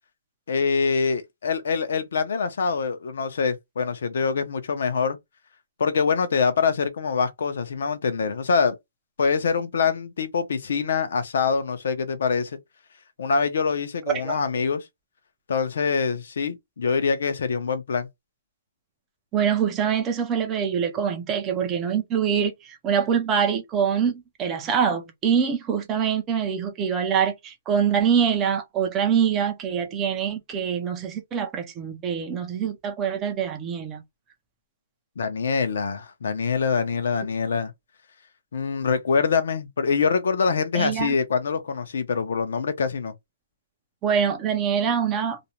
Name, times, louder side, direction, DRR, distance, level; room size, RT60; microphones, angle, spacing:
voice 1, 0.5-5.2 5.8-8.7 9.2-12.6 13.2-14.8 15.5-18.1 35.2-37.7 38.5-43.1, left 5 dB, 55° left, 0.6 m, -24 dB
voice 2, 14.1-14.4 19.3-34.0 40.7-41.1 44.0-45.4, right 7 dB, 15° right, 0.4 m, -24 dB
2.5 x 2.1 x 2.8 m
hypercardioid pair, 175°, 0 cm